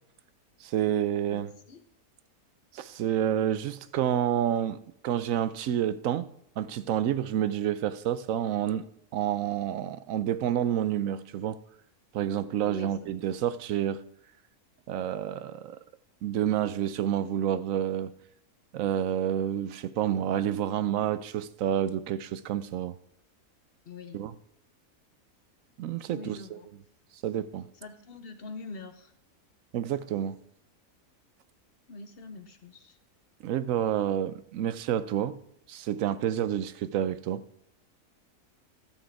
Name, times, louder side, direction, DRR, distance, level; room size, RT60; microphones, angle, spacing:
voice 1, 0.6-1.5 2.7-6.3 6.6-8.8 9.1-11.6 12.1-14.0 14.9-15.8 16.2-18.1 18.7-23.0 24.1-24.3 25.8-26.6 27.2-27.7 29.7-30.4 33.4-35.4 35.7-37.4, right 10 dB, 70° right, 0.9 m, -29 dB
voice 2, 1.3-1.8 12.6-13.2 23.9-24.2 26.1-26.7 27.7-29.1 31.9-33.0, left 4 dB, 45° left, 1.0 m, -44 dB
12.5 x 6.3 x 4.7 m
omnidirectional pair, 1.7 m